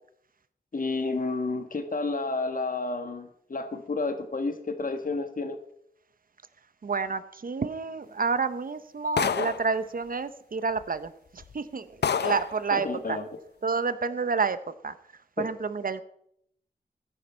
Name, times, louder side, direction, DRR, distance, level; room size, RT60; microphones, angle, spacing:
voice 1, 0.7-5.6 12.7-13.2 15.4-15.5, left 3 dB, 55° left, 8 dB, 1.4 m, -30 dB
voice 2, 6.8-13.2 13.6-16.0, right 4 dB, 55° right, 14 dB, 0.7 m, -29 dB
sound 1, 9.2-9.7 10.8-10.9 11.4-11.5 12.0-12.6, left 7 dB, 85° left, 0.6 m, -27 dB
14.5 x 10.5 x 4.3 m, 0.71 s
wide cardioid pair, 75°, 17 cm